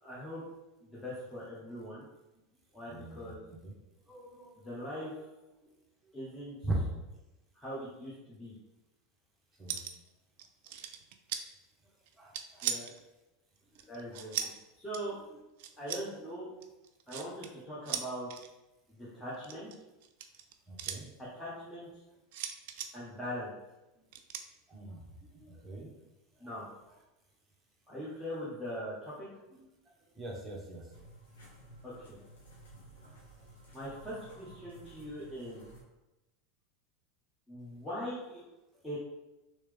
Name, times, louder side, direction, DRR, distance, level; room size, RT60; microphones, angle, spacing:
voice 1, 0.0-0.4 0.8-2.1 2.7-3.4 4.6-5.2 6.1-6.6 7.5-8.5 12.6-12.9 13.9-14.4 14.8-15.2 15.8-16.5 17.1-18.4 18.9-19.7 21.2-21.9 22.9-23.5 26.4-26.7 27.9-29.3 31.8-32.2 33.7-35.6 37.5-38.4 38.8-39.0, equal, 10° left, -8 dB, 1.2 m, -41 dB
voice 2, 2.9-3.3 3.6-3.7 4.1-4.6 5.0-5.1 6.6-6.7 9.6-9.8 12.2-12.7 13.7-14.2 17.3-17.4 20.7-21.1 24.7-25.9 26.4-26.5 29.5-29.6 30.1-30.9 33.0-33.4, right 2 dB, 10° right, -4 dB, 1.2 m, -43 dB
sound 1, 9.7-10.1 10.4-11.4 12.1-13.0 13.8-14.6 14.9-15.1 15.6-16.0 16.6-17.5 17.9-18.5 19.3-21.0 22.3-22.9 24.1-24.4, right 9 dB, 65° right, 0.3 m, -38 dB
sound 2, 30.9-35.8, right 1 dB, 80° left, 1.3 m, -54 dB
3.1 x 3.1 x 3.5 m, 1.0 s
hypercardioid pair, 90°, 0 cm